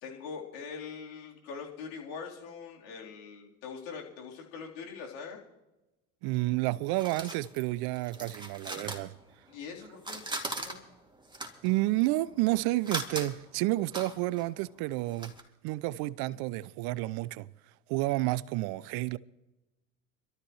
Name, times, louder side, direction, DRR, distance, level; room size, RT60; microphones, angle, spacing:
voice 1, 0.0-5.4 9.5-10.2 10.5-10.8, left 5 dB, 75° left, 3.8 m, -42 dB
voice 2, 6.2-9.1 11.6-15.3 15.6-17.5 17.9-19.2, right 18 dB, 60° right, 0.7 m, -30 dB
sound 1, 6.3-9.7 10.0-15.4, right 2 dB, 10° right, 2.5 m, -40 dB
25.5 x 13.0 x 3.1 m
hypercardioid pair, 75°, 43 cm